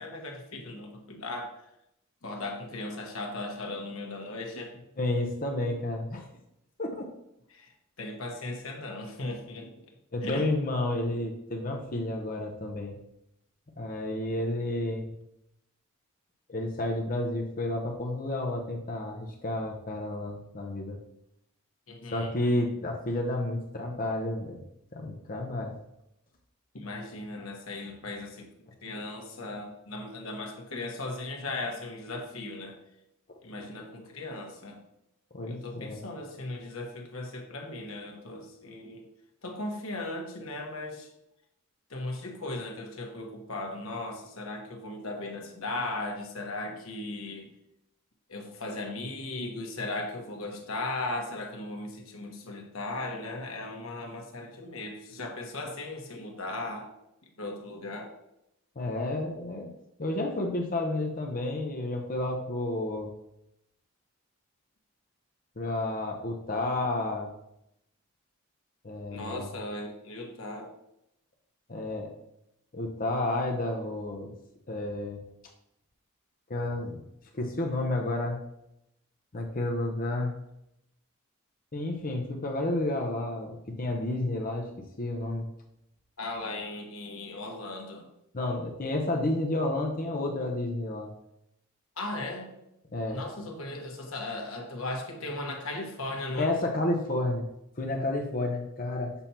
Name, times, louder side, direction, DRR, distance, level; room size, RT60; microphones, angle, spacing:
voice 1, 0.0-1.5 2.2-4.8 7.5-7.7 8.0-9.7 10.2-10.5 21.9-22.3 26.7-28.5 28.8-32.8 33.4-34.8 35.5-39.0 39.4-41.1 41.9-47.5 48.3-56.9 57.4-58.1 69.1-70.7 86.2-88.1 92.0-92.5 93.1-96.5, left 2 dB, 75° left, 2 dB, 1.3 m, -37 dB
voice 2, 5.0-6.3 6.8-7.0 10.1-13.0 13.8-15.1 16.5-21.0 22.1-24.6 24.9-25.8 35.3-36.0 58.8-59.7 60.0-63.1 65.6-67.3 68.8-69.5 71.7-72.1 72.7-74.3 74.7-75.2 76.5-77.0 77.3-78.4 79.3-80.3 81.7-84.7 85.0-85.5 88.3-91.1 92.9-93.2 96.4-97.4 97.8-99.1, left 2 dB, 40° left, 2 dB, 0.7 m, -31 dB
7.0 x 2.9 x 5.7 m, 0.82 s
head